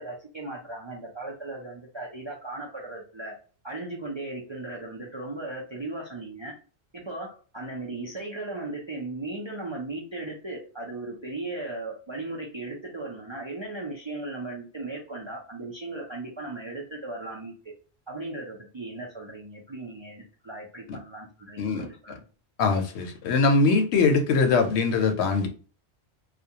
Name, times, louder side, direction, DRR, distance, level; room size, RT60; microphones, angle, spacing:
voice 1, 0.0-3.3 3.6-6.5 6.9-17.5 18.1-22.2, right 2 dB, 45° right, -2 dB, 0.3 m, -37 dB
voice 2, 22.6-25.5, left 4 dB, 80° left, 5 dB, 0.9 m, -22 dB
2.4 x 2.2 x 2.7 m, 0.38 s
omnidirectional pair, 1.1 m